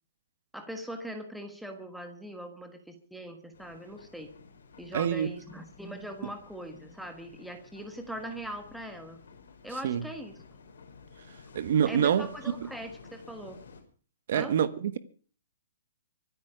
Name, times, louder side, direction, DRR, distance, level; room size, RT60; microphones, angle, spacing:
voice 1, 0.5-4.3 4.8-9.2 9.6-10.3 11.9-13.6 14.3-14.5, right 1 dB, ahead, 1.3 m, -41 dB
sound 1, 3.5-13.8, left 5 dB, 75° left, 5.2 m, -53 dB
voice 2, 4.9-5.3 9.8-10.1 11.5-12.3 12.6-12.7 14.3-15.0, right 8 dB, 45° right, 1.3 m, -26 dB
24.5 x 8.8 x 5.0 m
hypercardioid pair, 180°, 0 cm